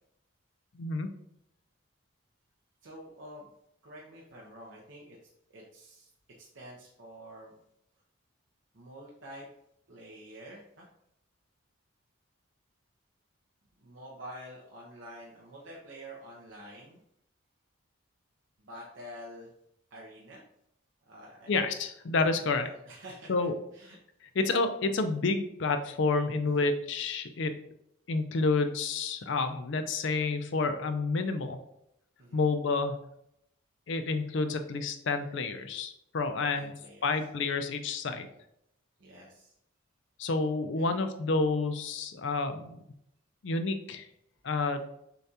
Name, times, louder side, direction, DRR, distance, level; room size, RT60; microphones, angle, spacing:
voice 1, 0.7-1.1 21.5-22.7 23.3-23.5 24.3-27.6 28.1-31.6 32.3-33.0 33.9-36.7 37.0-38.3 40.2-42.8 43.4-44.1 44.4-44.9, left 3 dB, 60° left, 8 dB, 0.4 m, -29 dB
voice 2, 2.8-3.5 3.8-5.2 5.5-6.1 6.4-7.5 8.7-9.5 9.9-10.9 13.8-17.0 18.6-19.5 19.9-20.4 21.1-21.7 22.6-24.0 26.5-26.7 32.2-32.5 36.5-37.3 39.0-39.5 40.8-40.9, equal, 60° right, -3 dB, 0.7 m, -48 dB
6.6 x 2.4 x 2.8 m, 0.77 s
head